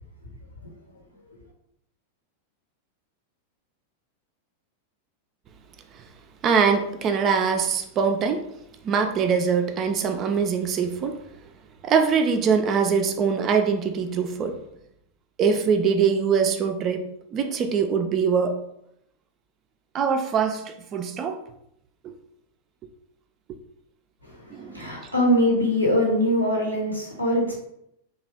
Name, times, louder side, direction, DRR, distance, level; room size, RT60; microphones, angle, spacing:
voice 1, 6.4-8.5 8.8-11.2 11.8-14.5 15.4-18.6 19.9-21.4 24.5-24.9, right 6 dB, 30° right, 6 dB, 0.3 m, -23 dB
voice 2, 24.2-27.6, equal, 85° left, -3 dB, 0.9 m, -23 dB
2.8 x 2.3 x 3.2 m, 0.77 s
figure-of-eight pair, 90°, 0 cm